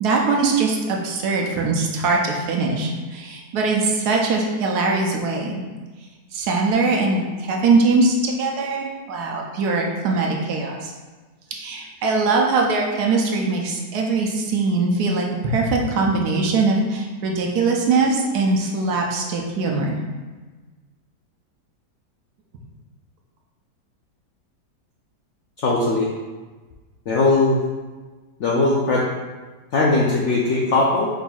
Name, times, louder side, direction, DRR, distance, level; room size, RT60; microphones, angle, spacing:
voice 1, 0.0-5.6 6.3-10.9 11.5-19.9, right 3 dB, 70° right, 0 dB, 1.2 m, -21 dB
voice 2, 25.6-26.1 27.1-27.6 28.4-29.0 29.7-31.1, left 2 dB, 75° left, -4 dB, 0.6 m, -19 dB
4.9 x 4.3 x 2.3 m, 1.3 s
omnidirectional pair, 1.8 m